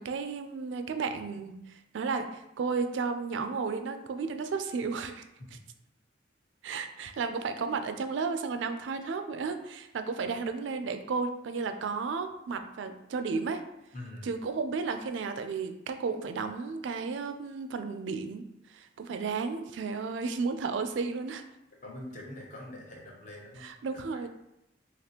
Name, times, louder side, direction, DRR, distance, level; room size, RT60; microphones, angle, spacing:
voice 1, 0.0-5.3 6.6-13.6 14.2-21.4 23.6-24.3, right 4 dB, 85° right, 8 dB, 0.4 m, -33 dB
voice 2, 13.9-14.4 21.8-24.0, left 1 dB, 45° left, -2 dB, 1.0 m, -44 dB
4.1 x 2.9 x 2.8 m, 0.86 s
head